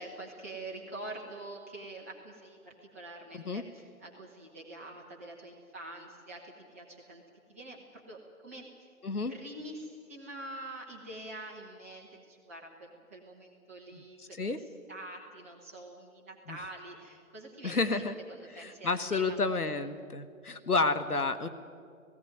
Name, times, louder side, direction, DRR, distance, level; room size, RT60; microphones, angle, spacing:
voice 1, 0.0-7.2 7.5-8.9 9.3-19.7 20.5-20.7, right 1 dB, 10° right, -3 dB, 1.0 m, -46 dB
voice 2, 17.6-18.1 18.6-21.5, left 3 dB, 80° left, 10 dB, 1.5 m, -30 dB
17.5 x 16.5 x 9.3 m, 2.3 s
figure-of-eight pair, 155°, 44 cm